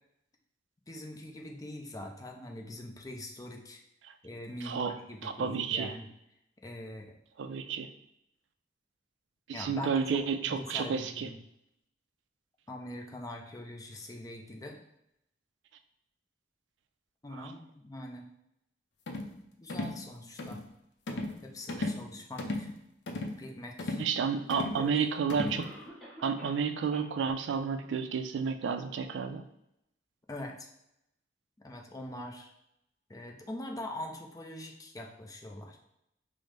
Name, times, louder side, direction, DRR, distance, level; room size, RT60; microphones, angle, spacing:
voice 1, 0.9-3.8 4.2-6.1 6.6-7.2 9.5-11.4 12.7-14.8 17.2-18.3 19.6-20.6 21.4-22.7 23.4-24.0 24.5-25.1 25.4-25.5 30.3-30.7 31.6-32.5 33.1-35.8, left 1 dB, 20° left, 2 dB, 0.5 m, -43 dB
voice 2, 4.6-5.0 5.2-5.9 7.4-7.9 9.5-11.3 17.3-17.5 21.8-21.9 24.0-25.7 26.2-29.4, right 6 dB, 90° right, 9 dB, 0.3 m, -31 dB
sound 1, 19.1-19.3 19.7-20.0 20.4-20.6 21.1-21.4 21.7-22.0 22.4-22.7 23.1-23.4 23.8-24.1 24.5-24.8 25.3-25.6, left 2 dB, 70° left, 0.5 m, -35 dB
Cough, 25.5-26.7 26.9-27.0 27.6-27.7 28.2-28.3, right 1 dB, 5° left, 1.0 m, -49 dB
5.2 x 2.0 x 3.2 m, 0.80 s
head